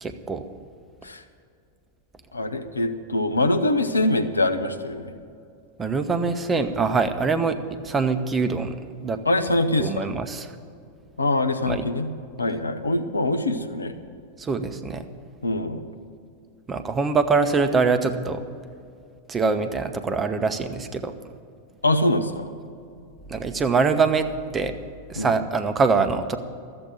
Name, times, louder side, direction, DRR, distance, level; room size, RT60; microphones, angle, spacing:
voice 1, 0.0-0.4 5.8-9.2 9.8-10.5 11.7-11.8 14.4-15.1 16.7-18.4 19.3-21.1 23.3-24.7 25.1-26.4, right 4 dB, 20° right, 8 dB, 0.8 m, -24 dB
voice 2, 2.3-5.1 9.3-10.1 11.2-12.1 12.4-13.9 15.4-15.8 21.8-22.5 25.2-25.4, left 2 dB, 80° left, 8 dB, 0.8 m, -23 dB
13.5 x 7.8 x 9.2 m, 2.4 s
figure-of-eight pair, 90°, 0 cm